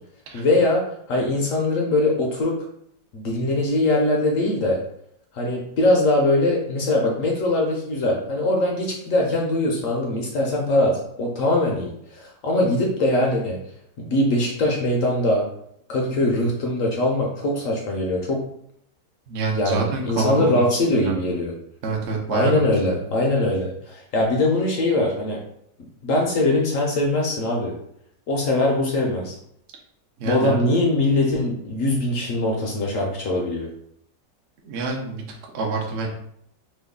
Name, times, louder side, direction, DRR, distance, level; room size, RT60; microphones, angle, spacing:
voice 1, 0.3-2.5 3.1-4.8 5.3-13.6 14.0-15.5 15.9-18.4 19.5-21.5 22.3-25.4 26.0-27.7 28.3-29.4 30.3-33.7, left 2 dB, 65° left, -1 dB, 0.8 m, -22 dB
voice 2, 19.3-21.1 21.8-23.0 30.2-30.6 34.6-36.1, right 4 dB, 60° right, 0 dB, 0.7 m, -27 dB
3.1 x 2.3 x 3.5 m, 0.71 s
omnidirectional pair, 1.8 m